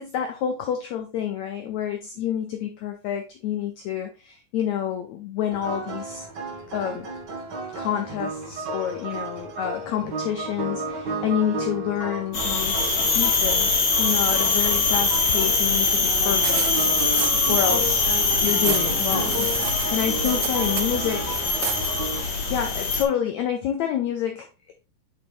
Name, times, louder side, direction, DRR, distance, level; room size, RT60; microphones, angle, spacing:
voice 1, 0.0-6.2 6.7-7.1 7.8-16.7 17.5-18.0 18.4-19.5 19.9-21.4 22.1-24.7, left 9 dB, 80° left, 5 dB, 1.6 m, -28 dB
sound 1, 5.5-22.2, right 2 dB, 55° right, 1.2 m, -33 dB
sound 2, 12.3-23.0, left 4 dB, 45° left, 1.4 m, -23 dB
sound 3, 15.9-16.0 16.4-17.9 18.1-21.1 21.6-21.9, right 11 dB, 80° right, 1.7 m, -33 dB
6.5 x 4.8 x 3.3 m, 0.29 s
omnidirectional pair, 4.0 m